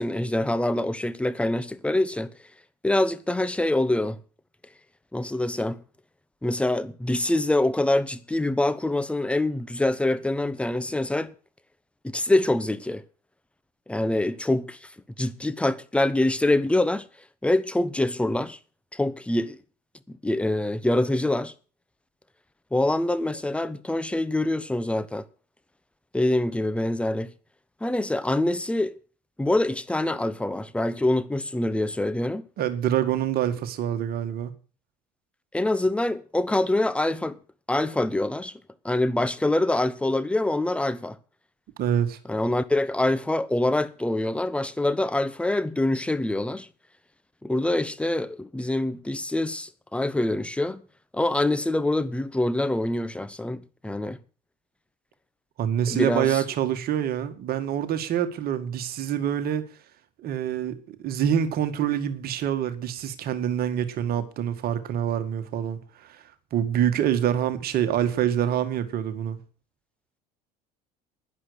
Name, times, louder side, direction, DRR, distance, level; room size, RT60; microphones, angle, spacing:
voice 1, 0.0-2.3 2.8-4.2 5.1-5.8 6.4-11.3 12.0-13.0 13.9-14.8 15.2-17.0 17.4-18.6 18.9-19.6 20.1-21.5 22.7-25.2 26.1-27.3 27.8-28.9 29.4-32.4 35.5-37.4 37.7-38.6 38.8-41.2 42.3-46.7 47.4-50.8 51.1-54.2 55.9-56.4, left 1 dB, 5° left, 1.1 m, -25 dB
voice 2, 32.6-34.5 41.8-42.2 55.6-59.7 60.2-66.2 66.5-69.4, right 10 dB, 45° right, 2.0 m, -26 dB
11.5 x 11.0 x 6.5 m
figure-of-eight pair, 65°, 21 cm